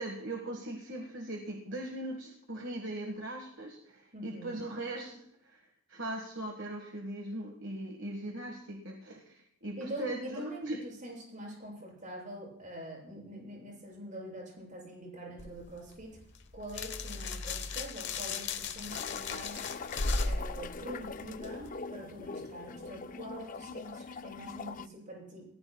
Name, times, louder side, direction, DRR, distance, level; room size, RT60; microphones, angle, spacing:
voice 1, 0.0-5.6 5.9-10.8, right 1 dB, 55° right, 2 dB, 1.7 m, -40 dB
voice 2, 4.1-4.6 9.8-16.2 16.5-19.7 20.2-25.5, right 1 dB, 35° right, -2 dB, 7.7 m, -44 dB
sound 1, 15.4-21.7, left 3 dB, 55° left, 1.1 m, -37 dB
sound 2, 18.9-24.9, left 4 dB, 40° left, 0.4 m, -42 dB
28.5 x 15.0 x 2.3 m, 0.76 s
head